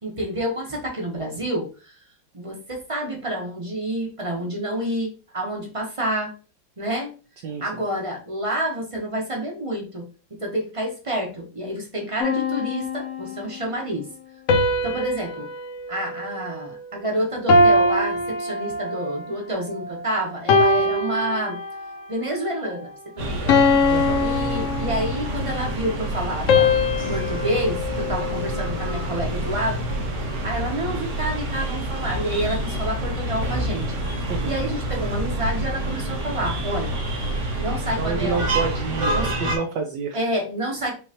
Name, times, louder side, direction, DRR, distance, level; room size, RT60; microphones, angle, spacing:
voice 1, 0.0-1.9 2.3-6.3 6.8-7.2 7.6-14.1 14.8-15.5 15.9-21.6 22.1-23.7 24.2-26.7 27.1-29.8 30.4-33.9 34.4-37.0 37.6-38.4 39.1-39.4 40.1-41.0, right 1 dB, 25° right, -1 dB, 0.8 m, -28 dB
sound 1, 12.2-13.5 14.5-17.0 17.5-19.2 19.8-20.0 20.5-22.0 22.5-22.8 23.5-25.4 26.5-28.9, left 2 dB, 75° left, 0.7 m, -22 dB
sound 2, 23.2-39.6, right 1 dB, 45° right, 1.3 m, -27 dB
voice 2, 38.0-40.2, right 5 dB, 70° right, 3 dB, 1.1 m, -28 dB
5.4 x 3.1 x 2.9 m, 0.35 s
omnidirectional pair, 2.1 m